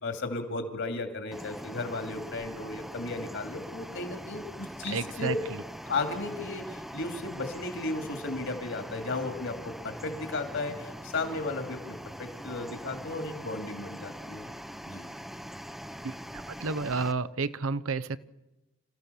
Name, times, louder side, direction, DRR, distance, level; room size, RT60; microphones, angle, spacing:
voice 1, 0.0-5.4 5.9-14.5 14.9-15.1, left 3 dB, 55° left, 6 dB, 2.7 m, -35 dB
sound 1, 1.3-17.1, equal, ahead, 0.8 m, -42 dB
voice 2, 4.9-5.6 16.0-16.1 16.6-18.2, right 4 dB, 65° right, 14 dB, 0.8 m, -31 dB
27.5 x 14.5 x 7.0 m, 1.0 s
head